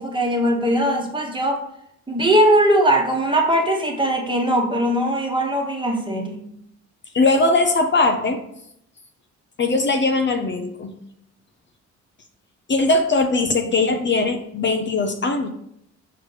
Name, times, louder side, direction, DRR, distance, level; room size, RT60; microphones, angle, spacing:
voice 1, 0.0-1.6 2.1-6.5, right 1 dB, 15° right, 1 dB, 1.3 m, -20 dB
voice 2, 7.1-8.5 9.6-11.0 12.7-15.5, left 3 dB, 40° left, 5 dB, 0.6 m, -20 dB
5.8 x 4.9 x 3.3 m, 0.74 s
cardioid pair, 90°, 30 cm